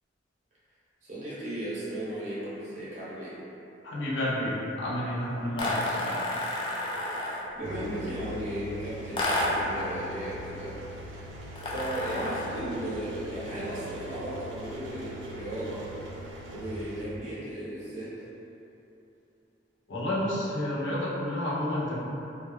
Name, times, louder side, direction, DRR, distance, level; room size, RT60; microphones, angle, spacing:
voice 1, 1.0-3.4 7.5-10.8 11.6-15.9 16.5-18.1, right 1 dB, 40° right, -9 dB, 0.7 m, -35 dB
voice 2, 3.8-6.2 13.5-13.6 19.9-22.0, left 1 dB, 85° left, -7 dB, 0.6 m, -30 dB
sound 1, 5.6-7.5 9.2-9.8 11.6-12.6, left 1 dB, 25° left, 0.3 m, -30 dB
Engine, 7.6-17.0, equal, 80° right, 0.4 m, -42 dB
2.3 x 2.2 x 3.0 m, 2.9 s
head